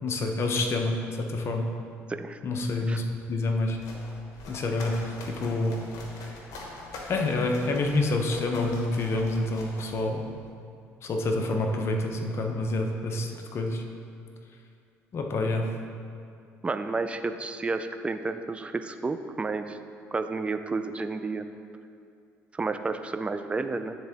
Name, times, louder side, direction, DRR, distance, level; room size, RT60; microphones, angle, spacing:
voice 1, 0.0-1.7 2.4-3.8 4.5-5.7 7.1-10.2 11.0-13.8 15.1-15.7, left 2 dB, 50° left, 3 dB, 0.7 m, -27 dB
sound 1, 3.5-10.5, left 2 dB, 70° left, 1.1 m, -44 dB
voice 2, 16.6-19.8 20.1-21.5 22.5-24.0, right 3 dB, 20° right, 9 dB, 0.4 m, -31 dB
9.5 x 3.7 x 3.5 m, 2.4 s
supercardioid pair, 85°, 6 cm